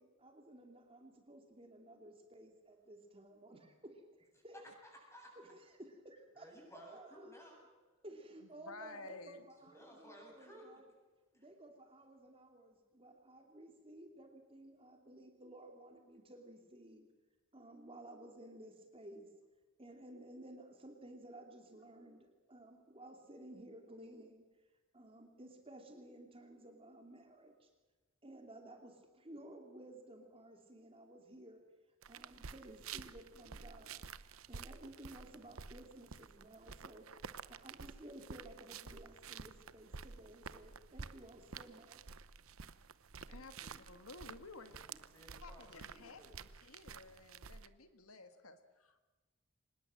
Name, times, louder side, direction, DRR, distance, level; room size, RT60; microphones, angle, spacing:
voice 1, 0.0-4.6 5.4-7.3 8.0-10.9 11.3-17.1 17.5-19.3 19.8-24.4 24.9-27.7 28.2-31.6 32.1-34.0 34.5-37.1 37.5-42.0, right 1 dB, 25° right, 4 dB, 2.7 m, -55 dB
voice 2, 4.5-5.3 6.3-7.6 8.0-8.1 9.6-11.0 11.3-11.5 43.3-43.8 44.7-46.4, equal, 15° left, 0 dB, 8.0 m, -57 dB
voice 3, 8.4-9.5 43.3-44.7 45.4-49.0, left 3 dB, 90° left, 9 dB, 1.9 m, -53 dB
sound 1, 32.0-47.7, right 5 dB, 75° right, 0.9 m, -51 dB
25.0 x 20.5 x 7.6 m, 1.2 s
head